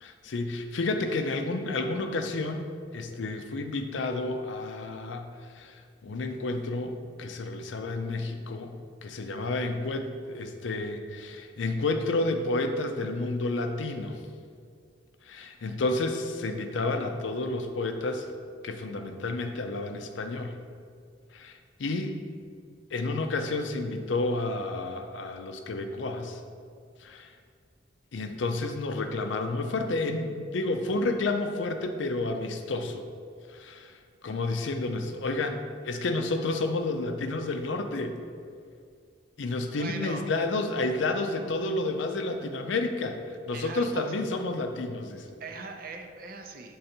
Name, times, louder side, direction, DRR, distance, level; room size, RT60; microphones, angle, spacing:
voice 1, 0.0-8.8 9.0-14.2 15.3-18.3 18.6-20.6 21.3-22.1 22.9-26.4 27.0-27.3 28.1-33.0 33.5-33.9 34.2-38.2 39.4-43.2 43.5-45.2, left 2 dB, 75° left, 6 dB, 0.5 m, -30 dB
voice 2, 39.7-40.3 43.5-44.2 45.4-46.8, right 4 dB, 50° right, 5 dB, 0.5 m, -40 dB
6.7 x 3.7 x 4.3 m, 2.2 s
head